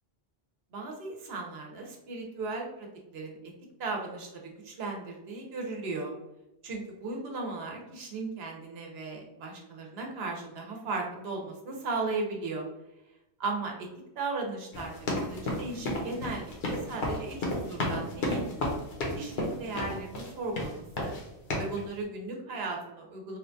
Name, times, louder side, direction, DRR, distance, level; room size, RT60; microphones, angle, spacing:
voice 1, 0.7-2.9 3.1-3.4 3.8-6.1 6.6-12.7 13.4-13.9 14.2-14.9 15.2-18.4 19.2-21.1 21.6-23.4, right 3 dB, 80° right, 1 dB, 0.9 m, -36 dB
sound 1, 14.7-20.3 20.6-21.2 21.5-21.8, left 1 dB, 75° left, 0.9 m, -32 dB
3.0 x 2.2 x 2.5 m, 0.92 s
omnidirectional pair, 1.0 m